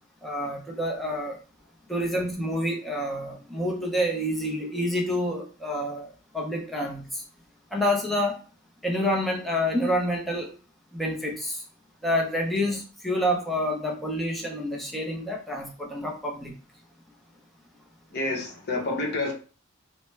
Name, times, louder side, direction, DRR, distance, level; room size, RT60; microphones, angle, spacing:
voice 1, 0.2-1.4 1.9-7.2 7.7-8.4 8.8-10.5 10.9-11.6 12.0-16.5, equal, ahead, -2 dB, 0.6 m, -28 dB
voice 2, 18.1-19.3, left 2 dB, 50° left, 0 dB, 0.9 m, -28 dB
3.2 x 2.1 x 3.2 m, 0.37 s
head